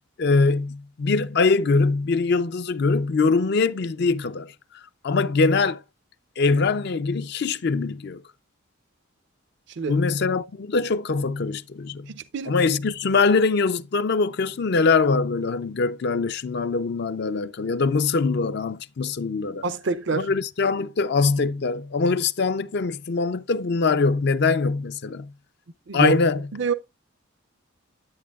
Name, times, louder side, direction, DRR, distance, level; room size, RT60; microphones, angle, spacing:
voice 1, 0.2-4.5 5.0-5.8 6.4-8.2 9.9-12.1 12.5-19.6 20.1-25.3 25.9-26.5, left 4 dB, 55° left, 0.4 m, -23 dB
voice 2, 12.1-12.5 19.6-20.3 25.9-26.2 26.5-26.7, right 5 dB, 60° right, 0.5 m, -26 dB
10.5 x 8.2 x 2.4 m
head